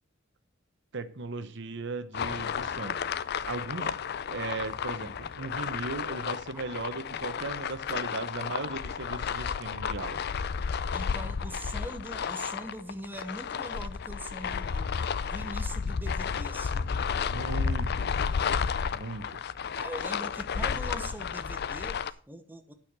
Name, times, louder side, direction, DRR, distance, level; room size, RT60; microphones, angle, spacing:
voice 1, 0.9-3.0 3.4-4.0 4.3-10.2 17.3-18.2 18.9-19.4, right 3 dB, 65° right, 1.0 m, -37 dB
sound 1, 2.1-22.1, left 6 dB, 55° left, 0.5 m, -32 dB
voice 2, 10.9-17.7 19.7-22.7, right 1 dB, 10° right, 1.0 m, -42 dB
9.0 x 6.5 x 6.6 m
head